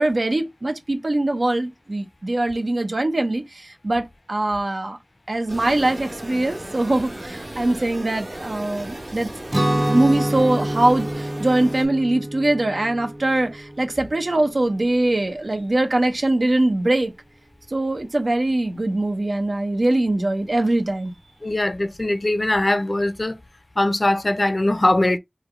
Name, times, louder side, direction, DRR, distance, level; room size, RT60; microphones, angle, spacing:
voice 1, 0.0-3.4 3.8-5.0 5.3-9.3 9.8-17.1 17.7-21.1, right 2 dB, 85° right, 0.7 m, -22 dB
sound 1, 5.5-11.9, right 1 dB, 65° right, 1.3 m, -36 dB
Guitar, 9.5-15.3, right 1 dB, 35° right, 0.6 m, -27 dB
voice 2, 21.4-23.4 23.8-25.2, left 1 dB, 60° left, 0.5 m, -21 dB
3.2 x 2.2 x 3.7 m
wide cardioid pair, 40°, 0 cm